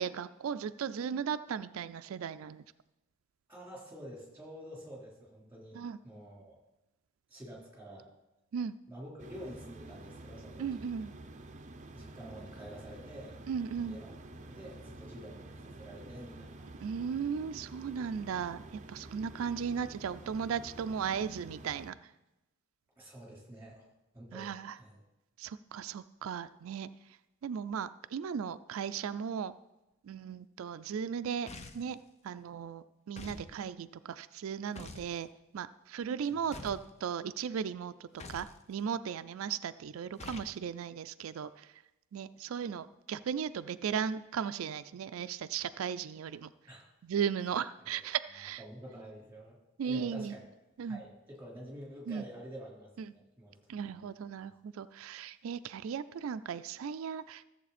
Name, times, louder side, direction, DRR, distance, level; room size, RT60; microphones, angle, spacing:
voice 1, 0.0-2.6 5.7-6.0 8.5-8.7 10.6-11.1 13.5-14.0 16.8-18.6 18.9-22.0 24.3-24.8 25.4-26.9 27.4-29.5 30.0-31.5 31.7-32.0 32.2-35.3 35.5-41.7 42.1-46.5 47.0-48.6 49.8-50.3 50.8-51.0 52.1-52.2 53.7-57.4, right 7 dB, 90° right, 12 dB, 0.4 m, -36 dB
voice 2, 3.5-6.6 7.3-8.1 8.9-10.9 11.9-13.4 13.8-16.7 23.0-23.9 24.1-25.0 46.7-46.9 47.9-48.0 48.4-49.6 49.8-50.4 50.8-54.0, equal, 10° right, -3 dB, 4.0 m, -48 dB
sound 1, 9.2-21.9, right 2 dB, 35° right, 0.6 m, -49 dB
sound 2, 31.5-32.0 33.2-33.5 34.8-35.1 36.5-36.9 38.2-38.6 40.2-40.6, left 2 dB, 35° left, 0.8 m, -46 dB
14.5 x 7.5 x 4.2 m, 0.97 s
head